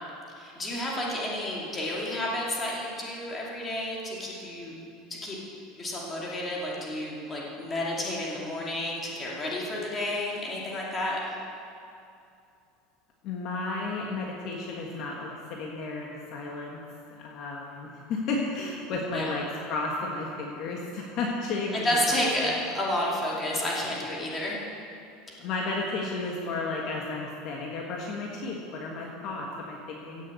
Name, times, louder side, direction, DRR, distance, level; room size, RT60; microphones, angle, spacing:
voice 1, 0.3-4.8 5.2-5.4 5.8-11.2 19.1-19.3 21.8-24.6, left 1 dB, 15° left, -4 dB, 2.5 m, -31 dB
voice 2, 13.2-16.8 17.1-22.5 23.5-23.6 25.4-30.3, left 3 dB, 40° left, -2 dB, 1.6 m, -33 dB
16.0 x 7.2 x 8.3 m, 2.6 s
cardioid pair, 170°, 0 cm